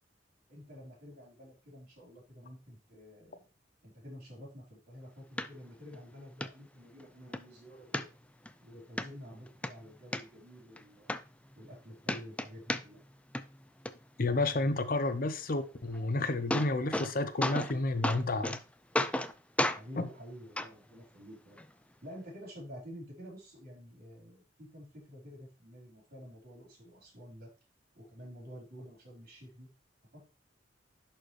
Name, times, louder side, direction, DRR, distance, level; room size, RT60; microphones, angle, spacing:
voice 1, 0.5-3.5 3.8-8.1 8.6-11.1 11.6-13.0 18.1-18.3 19.7-21.6 22.0-27.5 27.9-29.7 30.1-30.3, equal, 55° right, -2 dB, 4.1 m, -50 dB
sound 1, 5.4-5.5 5.9-6.0 6.4-6.5 7.0-7.4 7.9-8.5 9.0-9.1 9.5-10.2 10.8-10.9 11.1-11.8 12.0-13.1 13.3-13.9 15.9-16.0 16.3-17.1 17.4-17.7 18.0-18.6 18.9-19.3 19.6-19.8 20.6-20.7 21.6-21.7, left 1 dB, 5° left, 0.4 m, -32 dB
voice 2, 14.2-18.6 20.0-20.1, left 2 dB, 50° left, 11 dB, 0.7 m, -31 dB
11.0 x 4.5 x 3.2 m, 0.31 s
head